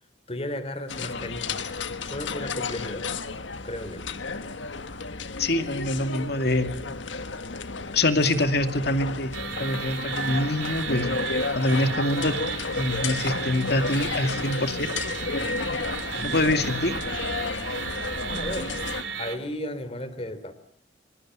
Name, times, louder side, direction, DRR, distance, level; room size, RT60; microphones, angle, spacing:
voice 1, 0.3-1.7 2.0-3.1 3.6-4.0 16.1-16.6 18.2-18.8 19.2-20.5, left 1 dB, 30° left, 13 dB, 3.3 m, -34 dB
sound 1, 0.9-19.0, left 4 dB, 85° left, 1.6 m, -32 dB
voice 2, 5.4-6.7 7.9-9.3 9.6-11.1 11.6-12.4 12.7-14.9 16.2-17.0, left 1 dB, 60° left, 7 dB, 2.5 m, -25 dB
sound 2, 9.3-19.4, right 6 dB, 90° right, 3.9 m, -34 dB
26.5 x 25.5 x 7.7 m, 0.63 s
head